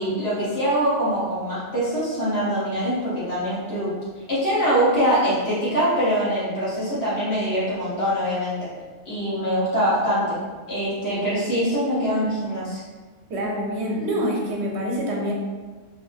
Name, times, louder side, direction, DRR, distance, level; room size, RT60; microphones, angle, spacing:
voice 1, 0.0-3.9 4.3-8.7 9.0-10.4 10.7-12.8, equal, 60° left, -10 dB, 1.4 m, -23 dB
voice 2, 13.3-15.3, equal, 65° right, -1 dB, 1.0 m, -26 dB
3.0 x 2.6 x 3.4 m, 1.4 s
omnidirectional pair, 1.2 m